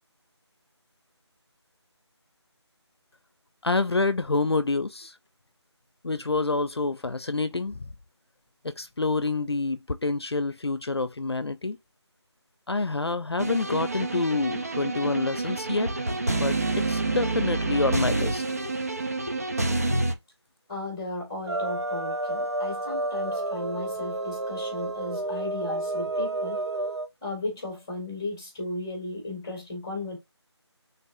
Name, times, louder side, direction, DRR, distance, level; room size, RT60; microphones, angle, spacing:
voice 1, 3.6-5.1 6.0-7.9 8.6-11.8 12.7-15.9 16.3-18.4, left 3 dB, 60° left, 0.6 m, -27 dB
sound 1, 13.4-20.1, right 2 dB, 35° right, 0.9 m, -28 dB
voice 2, 20.7-26.6 27.2-30.2, left 2 dB, 10° left, 2.1 m, -35 dB
sound 2, 21.4-27.1, right 2 dB, 65° right, 1.3 m, -30 dB
9.2 x 3.9 x 2.7 m
figure-of-eight pair, 175°, 15 cm